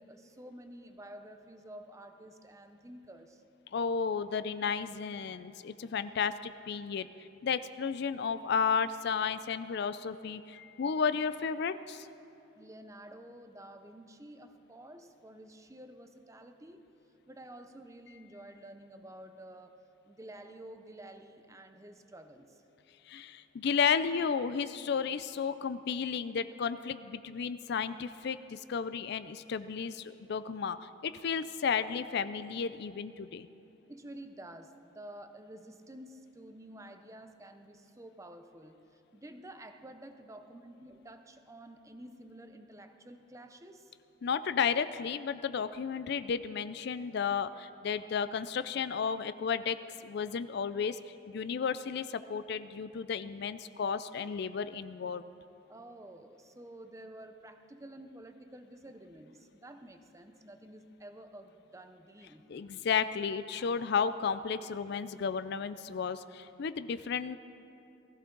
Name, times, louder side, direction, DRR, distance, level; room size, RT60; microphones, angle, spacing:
voice 1, 0.0-3.4 12.6-16.9 17.3-19.8 20.0-22.6 33.9-43.9 55.7-62.4, right 1 dB, 15° right, 7 dB, 0.6 m, -50 dB
voice 2, 3.7-7.1 7.4-12.1 23.1-33.5 44.2-51.0 51.3-55.2 62.5-67.4, left 6 dB, 55° left, 13 dB, 0.4 m, -33 dB
19.5 x 14.5 x 3.9 m, 2.8 s
head